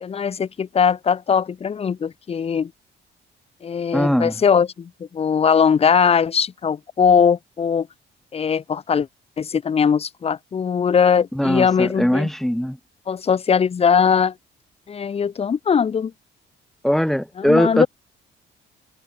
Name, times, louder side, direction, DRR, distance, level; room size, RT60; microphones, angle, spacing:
voice 1, 0.0-2.7 3.6-7.9 8.3-9.1 9.4-12.3 13.1-14.3 14.9-16.1 17.4-17.9, left 7 dB, 30° left, 0.5 m, -20 dB
voice 2, 3.9-4.3 11.3-12.8 16.8-17.9, equal, ahead, 1.6 m, -20 dB
cardioid pair, 90°, 20 cm